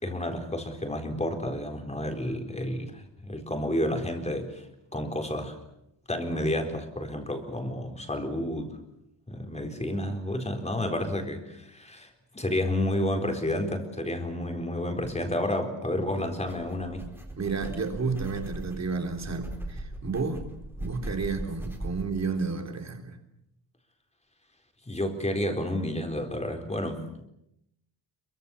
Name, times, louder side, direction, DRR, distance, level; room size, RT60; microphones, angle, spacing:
voice 1, 0.0-4.7 4.9-5.6 6.1-8.7 9.3-17.1 24.9-27.2, left 1 dB, 15° left, 4 dB, 4.2 m, -30 dB
sound 1, 16.2-22.3, right 1 dB, 5° right, 4.2 m, -39 dB
voice 2, 17.4-20.5 20.8-23.2, right 4 dB, 35° right, 4 dB, 3.8 m, -31 dB
27.5 x 24.0 x 7.2 m, 0.81 s
wide cardioid pair, 170°, 43 cm